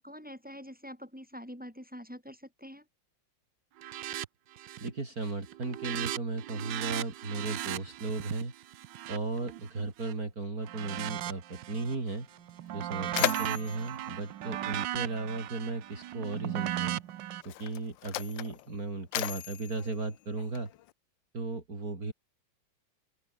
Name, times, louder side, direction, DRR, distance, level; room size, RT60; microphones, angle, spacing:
voice 1, 0.0-2.8, equal, 5° right, 4.6 m, -45 dB
sound 1, 3.8-4.3 4.6-5.0 5.3-10.1 10.6-12.0 12.3-17.4, right 12 dB, 70° right, 1.5 m, -37 dB
voice 2, 4.8-8.5 9.1-12.3 12.7-17.0 17.4-20.7 21.3-22.1, right 3 dB, 45° right, 4.6 m, -36 dB
Mechanisms, 12.2-12.3 12.6-15.4 16.4-16.5 17.3-20.9, left 14 dB, 75° left, 1.4 m, -37 dB
omnidirectional pair, 2.1 m